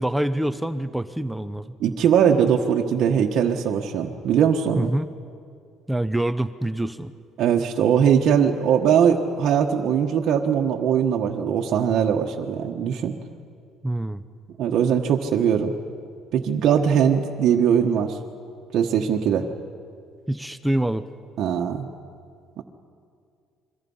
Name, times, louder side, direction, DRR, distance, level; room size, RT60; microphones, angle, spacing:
voice 1, 0.0-1.7 4.8-5.1 5.9-7.1 13.8-14.2 20.3-21.0, right 1 dB, 5° right, 11 dB, 0.8 m, -25 dB
voice 2, 1.8-4.9 7.4-13.1 14.6-15.7 16.3-18.2 18.7-19.5 21.4-21.9 22.6-22.7, right 8 dB, 65° right, 1 dB, 1.3 m, -21 dB
26.5 x 23.0 x 5.6 m, 2.3 s
cardioid pair, 95°, 0 cm